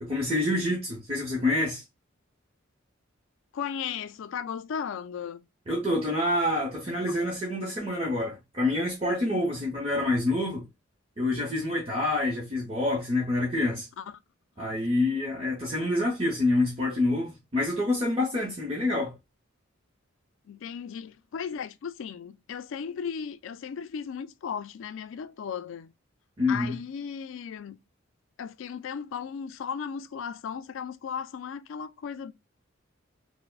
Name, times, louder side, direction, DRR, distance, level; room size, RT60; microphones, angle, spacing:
voice 1, 0.0-1.8 5.7-10.6 11.2-13.9 14.6-19.2 26.4-26.8, left 2 dB, 30° right, 0.9 m, -27 dB
voice 2, 3.5-5.4 14.0-14.2 20.5-25.9 26.5-27.8 28.4-32.3, left 7 dB, 70° left, 0.3 m, -36 dB
4.7 x 2.1 x 2.2 m
head